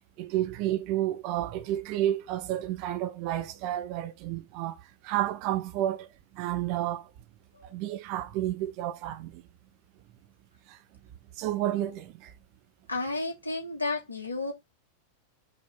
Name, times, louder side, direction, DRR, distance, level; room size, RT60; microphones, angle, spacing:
voice 1, 0.2-6.1 6.3-7.1 7.7-9.4 10.7-10.8 11.4-12.3, right 13 dB, 45° right, 1.0 m, -31 dB
voice 2, 12.9-14.5, left 3 dB, 80° left, 3.0 m, -32 dB
5.5 x 4.0 x 5.8 m
figure-of-eight pair, 90°, 0 cm